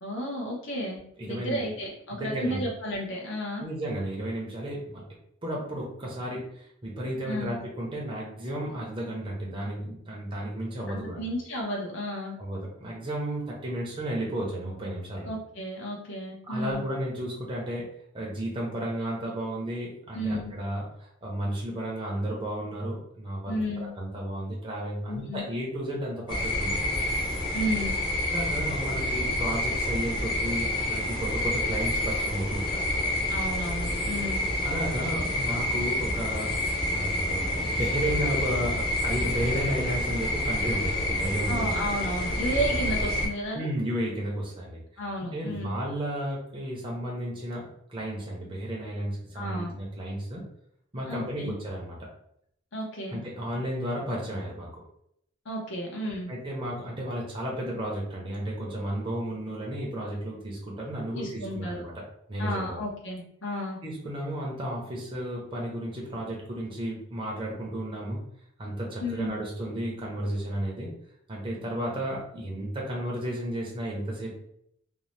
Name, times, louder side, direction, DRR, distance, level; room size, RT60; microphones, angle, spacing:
voice 1, 0.0-3.6 7.2-7.6 10.9-12.3 15.2-16.8 20.1-20.5 23.4-23.9 25.1-25.4 27.5-27.9 33.3-34.5 41.5-43.7 45.0-45.8 49.3-49.7 51.1-51.5 52.7-53.2 55.4-56.3 61.1-61.7 62.4-63.8 69.0-69.3, equal, 60° left, -1 dB, 0.8 m, -32 dB
voice 2, 1.2-1.6 2.1-2.6 3.6-5.0 5.4-11.2 12.4-15.3 16.4-17.9 18.1-27.0 28.3-33.0 34.6-41.7 43.5-45.0 45.3-47.6 47.9-50.4 50.9-52.0 53.1-54.7 56.3-61.9 62.3-62.8 63.8-68.2 68.6-70.9 71.3-74.3, right 1 dB, 25° right, -3 dB, 0.6 m, -33 dB
sound 1, 26.3-43.3, left 1 dB, 25° left, 0.7 m, -28 dB
2.7 x 2.1 x 3.1 m, 0.73 s
head